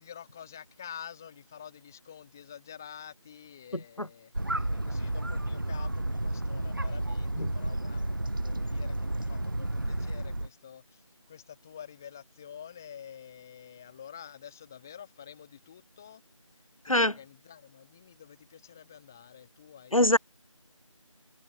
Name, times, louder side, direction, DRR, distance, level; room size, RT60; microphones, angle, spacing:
voice 1, 0.0-16.2 16.5-20.2, left 8 dB, 5° left, 3.9 m, -48 dB
voice 2, 4.0-4.1 7.4-7.5 16.9-17.1 19.9-20.2, left 1 dB, 85° left, 4.8 m, -22 dB
sound 1, 4.3-10.5, right 1 dB, 40° right, 1.6 m, -31 dB
figure-of-eight pair, 175°, 17 cm